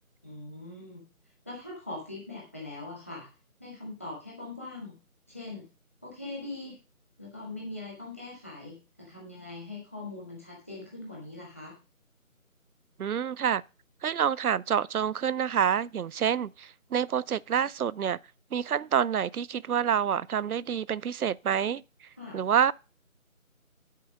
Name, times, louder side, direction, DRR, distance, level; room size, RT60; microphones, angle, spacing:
voice 1, 0.2-1.0 1.4-3.3 3.6-4.9 5.3-5.6 6.0-6.8 7.2-11.7 22.2-22.4, left 2 dB, 10° left, 1.4 m, -41 dB
voice 2, 13.0-13.6 14.0-18.2 18.5-21.8 22.3-22.7, right 8 dB, 90° right, 0.5 m, -27 dB
9.4 x 4.5 x 6.2 m
figure-of-eight pair, 170°, 42 cm